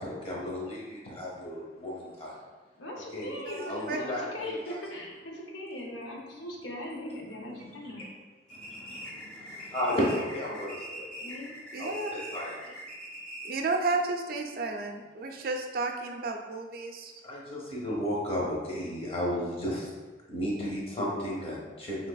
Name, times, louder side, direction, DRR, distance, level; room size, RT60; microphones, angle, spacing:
voice 1, 0.0-2.4 3.1-3.3 3.7-4.8 8.5-11.3 11.8-12.7 17.2-19.9 20.3-22.0, equal, 30° left, -4 dB, 0.8 m, -34 dB
voice 2, 2.8-8.0 11.2-11.6, left 1 dB, 75° left, 0 dB, 0.7 m, -40 dB
voice 3, 3.5-4.0 11.7-12.1 13.4-17.1, right 3 dB, 50° right, 3 dB, 0.4 m, -32 dB
sound 1, 8.5-13.8, equal, 5° left, 0.5 m, -42 dB
3.3 x 3.2 x 2.3 m, 1.3 s
head